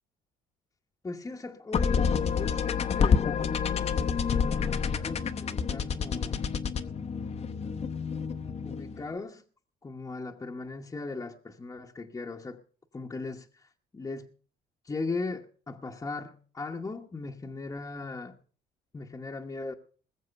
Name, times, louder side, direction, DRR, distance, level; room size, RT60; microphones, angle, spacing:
voice 1, 1.0-2.0 2.4-3.7 4.0-6.4 8.6-9.4 9.8-12.6 12.9-14.3 14.8-18.4 18.9-19.7, left 3 dB, 20° left, 1.1 m, -38 dB
sound 1, 1.7-9.1, left 6 dB, 40° left, 0.9 m, -28 dB
20.5 x 7.3 x 5.8 m
cardioid pair, 110°, 17 cm